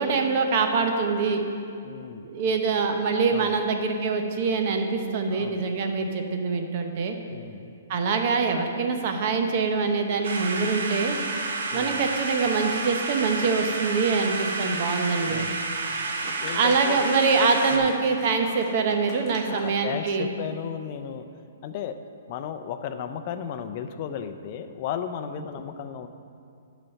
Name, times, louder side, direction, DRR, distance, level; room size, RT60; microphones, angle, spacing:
voice 1, 0.0-1.4 2.3-7.2 7.9-11.2 11.7-15.4 16.2-20.3, right 4 dB, 40° right, 4 dB, 0.8 m, -24 dB
voice 2, 1.8-2.3 3.3-3.6 5.3-5.6 7.3-7.7 11.7-12.1 15.3-15.6 16.4-17.1 17.7-17.9 19.5-21.3 21.6-22.0 22.3-26.1, left 8 dB, 35° left, 9 dB, 0.4 m, -35 dB
sound 1, 10.2-17.8, right 3 dB, 75° right, 0.9 m, -30 dB
Scissors, 13.6-19.7, left 1 dB, 10° left, 1.2 m, -44 dB
8.9 x 4.1 x 6.9 m, 2.4 s
hypercardioid pair, 160°, 0 cm